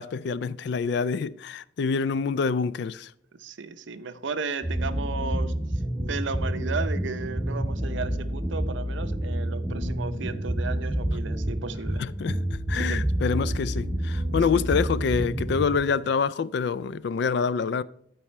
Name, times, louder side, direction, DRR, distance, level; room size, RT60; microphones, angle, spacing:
voice 1, 0.0-3.1 12.0-17.8, left 5 dB, 55° left, 0.3 m, -26 dB
voice 2, 3.3-5.5 6.1-12.0 12.8-13.0 14.2-14.7, right 4 dB, 65° right, 0.6 m, -34 dB
sound 1, 4.6-15.8, right 1 dB, ahead, 0.9 m, -28 dB
12.0 x 4.8 x 4.3 m
head